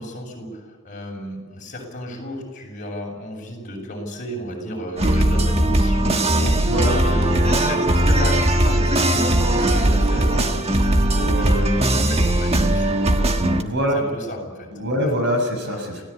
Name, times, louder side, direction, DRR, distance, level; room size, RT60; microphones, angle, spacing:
voice 1, 0.0-6.7 7.0-13.6 13.9-15.1 15.9-16.0, equal, 35° left, 0 dB, 7.0 m, -32 dB
sound 1, 5.0-13.6, right 1 dB, 30° right, 1.5 m, -19 dB
voice 2, 6.6-6.9 13.6-14.0 14.7-16.0, equal, 50° right, 4 dB, 6.1 m, -23 dB
27.5 x 17.5 x 8.5 m, 1.4 s
head